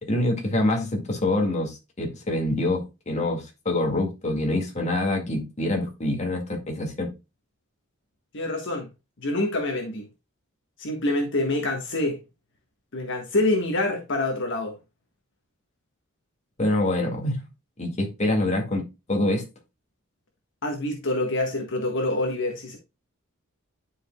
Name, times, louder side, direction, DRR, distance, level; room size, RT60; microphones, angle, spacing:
voice 1, 0.0-7.1 16.6-17.4 17.8-19.4, left 1 dB, 35° left, 2.1 m, -26 dB
voice 2, 8.3-8.9 9.2-10.1 10.8-12.2 12.9-14.7 20.6-22.8, left 2 dB, 60° left, 1.5 m, -26 dB
11.5 x 5.0 x 2.3 m
head